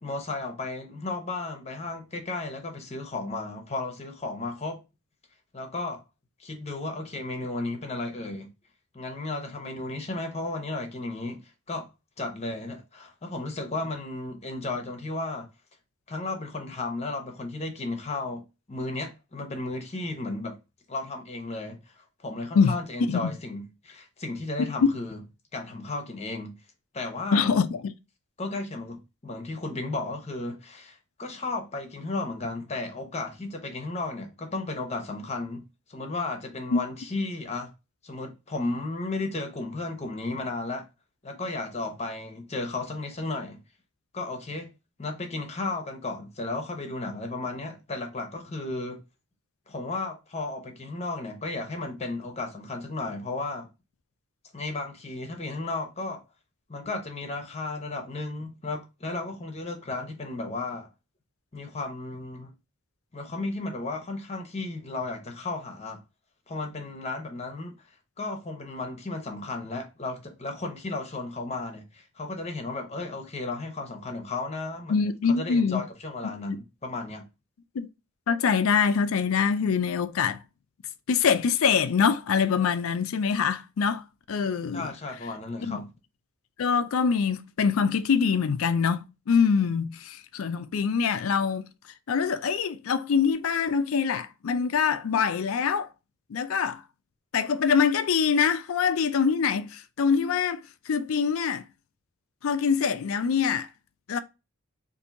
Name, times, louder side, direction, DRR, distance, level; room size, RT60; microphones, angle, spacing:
voice 1, 0.0-4.8 5.5-6.0 6.4-8.5 8.9-11.9 12.2-15.5 16.1-18.4 18.7-20.6 20.9-21.9 22.2-25.2 25.5-26.6 26.9-27.5 28.4-35.6 35.9-37.7 38.0-40.8 41.2-43.6 44.1-44.7 45.0-49.0 49.7-53.7 54.5-56.2 56.7-60.9 61.5-62.5 63.1-66.0 66.5-67.7 68.2-75.0 75.4-77.3 84.7-85.9, left 2 dB, 30° left, 0.8 m, -34 dB
voice 2, 27.3-27.9 36.7-36.8 74.9-75.8 76.2-76.3 77.7-77.9 78.3-80.4 81.1-84.9 85.6-85.8 86.6-91.6 92.1-95.9 96.3-96.8 97.3-101.6 102.4-103.7 104.1-104.2, left 6 dB, 70° left, 0.4 m, -24 dB
4.3 x 2.6 x 2.5 m
head